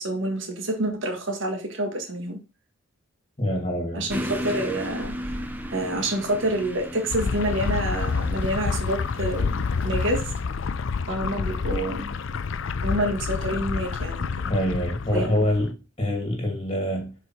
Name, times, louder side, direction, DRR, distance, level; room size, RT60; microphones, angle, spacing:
voice 1, 0.0-2.4 3.9-5.2 5.7-10.2 11.1-12.1 12.8-14.3 15.1-15.4, right 1 dB, 60° right, 1.8 m, -27 dB
voice 2, 3.4-4.1 14.4-17.1, left 1 dB, 25° left, 2.4 m, -25 dB
sound 1, 4.1-10.4, equal, 10° right, 0.6 m, -36 dB
sound 2, 7.1-15.7, left 5 dB, 60° left, 0.5 m, -28 dB
6.7 x 5.0 x 4.4 m
head